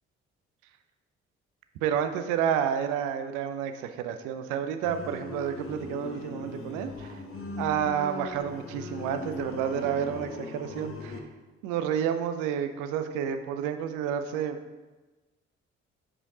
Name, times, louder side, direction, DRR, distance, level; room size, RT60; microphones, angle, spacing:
voice 1, 1.8-7.2 7.6-11.2 11.6-14.6, right 8 dB, 75° right, 9 dB, 0.6 m, -30 dB
sound 1, 4.8-11.2, left 3 dB, 45° left, 1.1 m, -39 dB
8.5 x 5.0 x 2.8 m, 1.2 s
hypercardioid pair, 45°, 31 cm